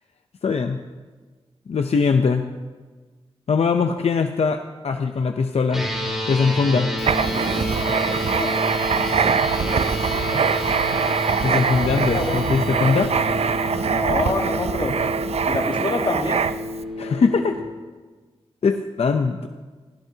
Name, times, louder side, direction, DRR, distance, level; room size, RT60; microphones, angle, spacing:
voice 1, 0.4-0.8 1.7-2.5 3.5-4.6 4.8-5.9 6.3-6.9 10.0-10.2 11.4-13.1 17.0-17.6 18.6-19.5, left 5 dB, 80° left, 5 dB, 0.6 m, -21 dB
sound 1, 5.7-17.6, left 1 dB, 5° right, 3.1 m, -29 dB
Writing, 7.0-16.8, right 6 dB, 80° right, 0.4 m, -23 dB
voice 2, 13.8-15.0 15.5-16.4, left 2 dB, 55° left, 3 dB, 1.6 m, -26 dB
19.5 x 16.5 x 2.8 m, 1.3 s
wide cardioid pair, 110°, 10 cm